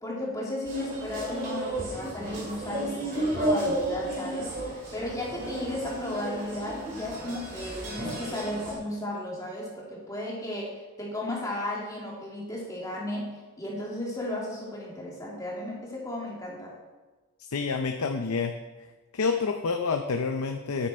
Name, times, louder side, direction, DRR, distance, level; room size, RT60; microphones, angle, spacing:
voice 1, 0.0-16.8, left 1 dB, 15° left, -4 dB, 2.2 m, -35 dB
sound 1, 0.6-8.7, right 1 dB, 40° right, 2.9 m, -33 dB
voice 2, 17.5-18.5 19.1-20.9, left 4 dB, 90° left, 5 dB, 0.6 m, -28 dB
10.0 x 8.8 x 4.3 m, 1.2 s
head